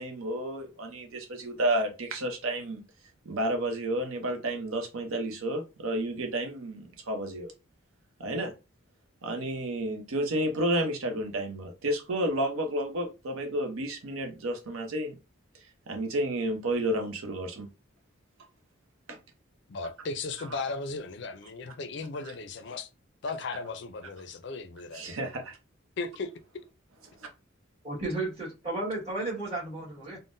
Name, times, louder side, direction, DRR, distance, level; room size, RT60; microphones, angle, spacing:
voice 1, 0.0-2.8 3.3-7.5 8.2-8.5 9.2-15.2 15.9-17.7 19.1-19.2 20.5-20.6 24.9-25.6 27.2-27.3, right 1 dB, 85° right, 0.7 m, -31 dB
voice 2, 19.7-22.9 23.2-25.2 26.0-26.3, left 3 dB, 55° left, 0.4 m, -36 dB
voice 3, 27.8-30.2, right 2 dB, 30° right, 1.4 m, -33 dB
3.6 x 2.0 x 2.5 m
head